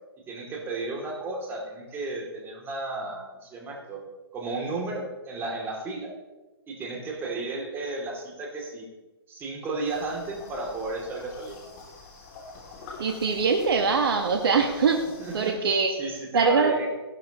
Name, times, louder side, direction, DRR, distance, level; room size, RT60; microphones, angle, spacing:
voice 1, 0.3-4.0 4.3-6.1 6.7-8.9 9.3-11.6 15.2-15.5 15.9-16.9, right 3 dB, 15° right, 0 dB, 2.7 m, -34 dB
sound 1, 9.8-15.5, left 3 dB, 35° left, 2.8 m, -45 dB
voice 2, 13.0-15.0 15.3-15.9 16.3-16.9, right 5 dB, 65° right, 3 dB, 1.4 m, -22 dB
14.5 x 12.5 x 3.0 m, 1.1 s
hypercardioid pair, 135°, 13 cm